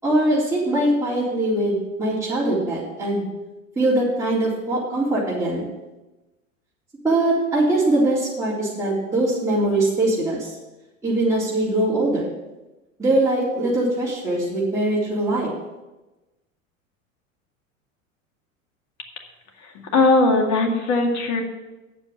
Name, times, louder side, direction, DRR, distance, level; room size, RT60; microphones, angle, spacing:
voice 1, 0.0-3.2 3.8-5.6 7.0-10.6 11.0-12.3 13.0-15.5, right 1 dB, 5° right, -9 dB, 3.8 m, -22 dB
voice 2, 19.6-21.4, left 3 dB, 45° left, 3 dB, 2.3 m, -19 dB
8.9 x 7.1 x 8.1 m, 1.1 s
hypercardioid pair, 80°, 40 cm